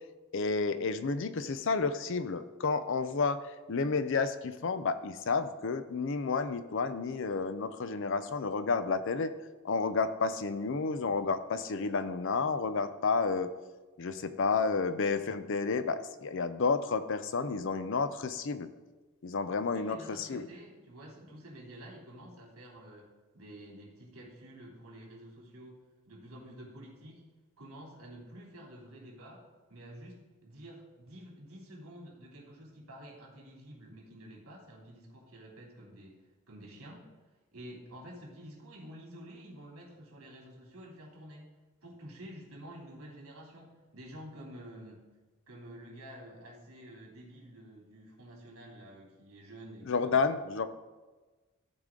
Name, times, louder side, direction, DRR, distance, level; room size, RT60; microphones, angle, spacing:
voice 1, 0.3-3.4 3.7-9.3 9.6-13.5 14.0-18.7 19.2-20.5 49.9-50.7, left 4 dB, 60° left, 11 dB, 0.5 m, -31 dB
voice 2, 19.7-23.1 23.3-25.8 26.1-27.2 27.6-36.2 36.5-37.1 37.5-41.5 41.8-45.1 45.5-50.2, right 1 dB, 75° right, -2 dB, 3.1 m, -49 dB
14.5 x 4.9 x 3.7 m, 1.2 s
head